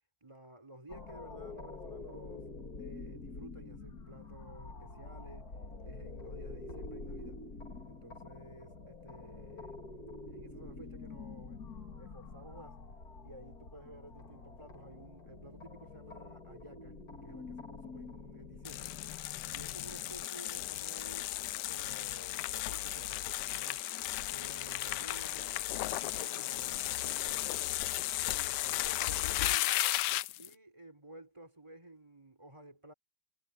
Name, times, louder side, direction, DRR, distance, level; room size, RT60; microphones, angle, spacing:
voice 1, 0.2-2.5 2.8-5.5 5.8-7.4 7.8-11.6 12.0-12.8 13.2-19.0 19.5-21.4 21.7-23.8 24.3-27.7 28.2-29.8 30.4-32.9, right 1 dB, 15° right, 4.7 m, -53 dB
sound 1, 0.9-20.3, left 3 dB, 50° left, 3.2 m, -47 dB
sound 2, 18.6-30.5, left 15 dB, 75° left, 1.1 m, -35 dB
omnidirectional pair, 2.0 m